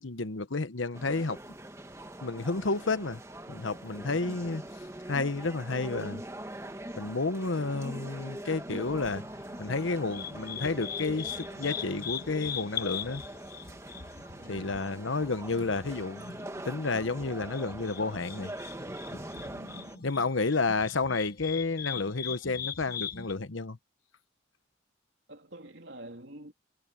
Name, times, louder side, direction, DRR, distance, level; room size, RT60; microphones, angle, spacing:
voice 1, 0.0-1.4 2.2-3.2 3.5-4.7 5.1-6.2 6.9-9.2 9.6-13.2 14.5-16.4 16.6-18.5 19.1-19.5 20.0-23.8, left 3 dB, 85° left, 1.1 m, -31 dB
sound 1, 0.9-20.0, right 1 dB, 15° right, 1.3 m, -43 dB
sound 2, 8.7-23.3, left 8 dB, 50° left, 1.4 m, -41 dB
voice 2, 14.4-14.8 19.5-20.1 25.3-26.5, right 1 dB, 65° right, 3.4 m, -48 dB
head